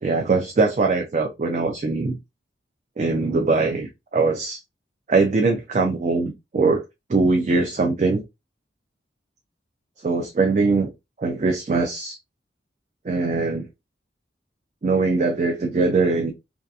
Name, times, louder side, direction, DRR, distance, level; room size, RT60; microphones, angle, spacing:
voice 1, 0.0-2.2 3.0-4.6 5.1-6.8 7.1-8.2 10.0-10.9 11.2-12.2 13.0-13.7 14.8-16.3, right 3 dB, 40° right, 0.4 m, -21 dB
2.7 x 2.4 x 2.2 m
head